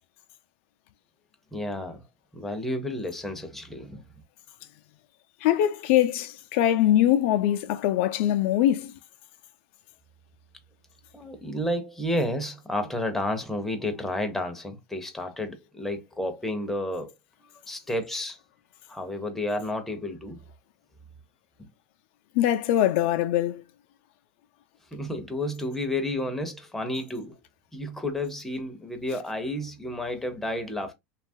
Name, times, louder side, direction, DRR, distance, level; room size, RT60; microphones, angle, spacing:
voice 1, 1.5-2.0 2.3-4.0 11.1-17.1 17.7-18.4 18.9-20.4 24.9-27.3 27.7-30.9, left 1 dB, 5° left, 0.6 m, -31 dB
voice 2, 5.4-8.9 22.4-23.6, left 12 dB, 70° left, 0.4 m, -22 dB
2.9 x 2.3 x 2.6 m
supercardioid pair, 130°, 7 cm